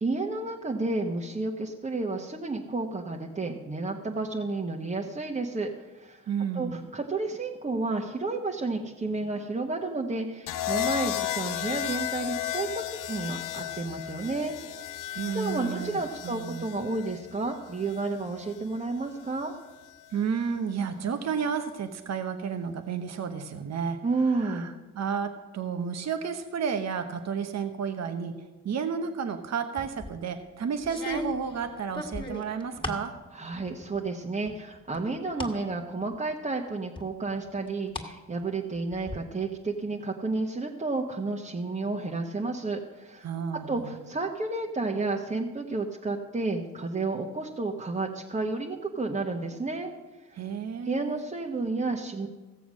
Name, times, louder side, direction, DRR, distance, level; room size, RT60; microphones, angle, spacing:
voice 1, 0.0-6.2 6.5-14.6 15.3-19.5 24.0-24.7 33.3-49.9 50.3-50.4 50.8-52.3, right 3 dB, 25° right, 0 dB, 1.2 m, -31 dB
voice 2, 6.3-6.8 15.2-16.6 20.1-24.0 24.3-28.3 28.6-33.1 43.2-43.9 50.3-51.2, right 6 dB, 55° right, 7 dB, 1.0 m, -32 dB
sound 1, 10.5-18.6 19.8-20.2, left 12 dB, 75° left, 0.7 m, -34 dB
sound 2, 29.8-30.2 30.8-33.1 33.5-34.1 34.5-35.6 36.0-36.1 37.0-38.1 38.4-39.2, left 2 dB, 15° left, 2.0 m, -38 dB
16.0 x 7.0 x 6.3 m, 1.2 s
cardioid pair, 70°, 32 cm